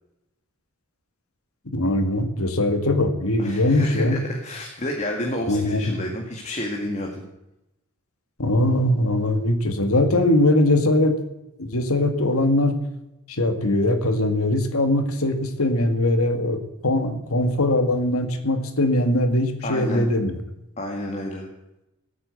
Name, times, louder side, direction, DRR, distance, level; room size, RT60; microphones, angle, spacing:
voice 1, 1.7-4.2 5.5-6.0 8.4-11.2 11.6-12.8 13.3-20.4, left 1 dB, 80° left, 8 dB, 2.1 m, -21 dB
voice 2, 3.4-7.2 19.6-20.1 20.8-21.5, left 1 dB, 30° left, 1 dB, 2.1 m, -30 dB
18.5 x 8.7 x 8.4 m, 0.92 s
head